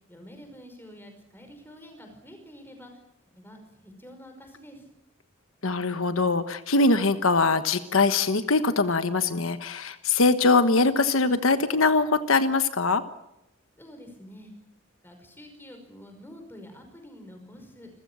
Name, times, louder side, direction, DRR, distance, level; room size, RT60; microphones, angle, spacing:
voice 1, 0.1-2.9 3.3-4.9 13.8-14.5 15.0-17.9, equal, 10° left, 5 dB, 5.4 m, -47 dB
voice 2, 5.6-13.0, left 3 dB, 85° left, 11 dB, 1.3 m, -22 dB
28.5 x 15.0 x 8.8 m, 0.86 s
head